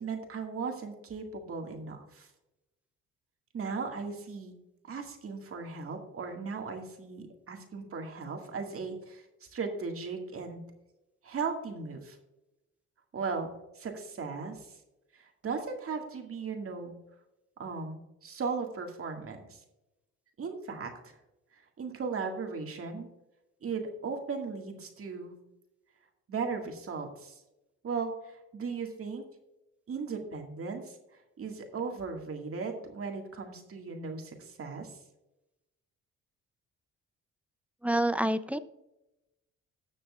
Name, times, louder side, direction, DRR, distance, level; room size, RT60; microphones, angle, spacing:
voice 1, 0.0-2.3 3.5-4.6 4.8-10.6 11.2-12.2 13.1-13.5 13.7-14.8 15.1-16.9 17.6-19.6 20.4-21.2 21.5-23.1 23.6-25.3 26.3-27.4 27.8-29.3 29.9-31.0 31.4-35.0, right 5 dB, 50° right, 3 dB, 2.0 m, -37 dB
voice 2, 37.8-38.6, right 1 dB, 5° right, 13 dB, 0.5 m, -27 dB
17.5 x 6.6 x 2.4 m, 0.94 s
cardioid pair, 90°, 30 cm